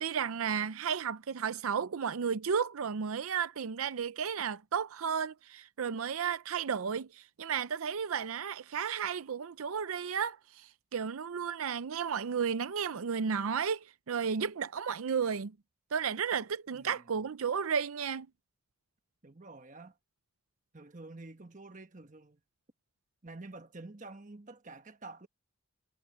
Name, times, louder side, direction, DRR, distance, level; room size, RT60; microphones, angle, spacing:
voice 1, 0.0-15.5 15.9-18.3, right 6 dB, 80° right, 0.5 m, -33 dB
voice 2, 16.7-17.2 19.2-20.0 20.7-22.4 23.2-25.3, right 2 dB, 35° right, 1.3 m, -49 dB
head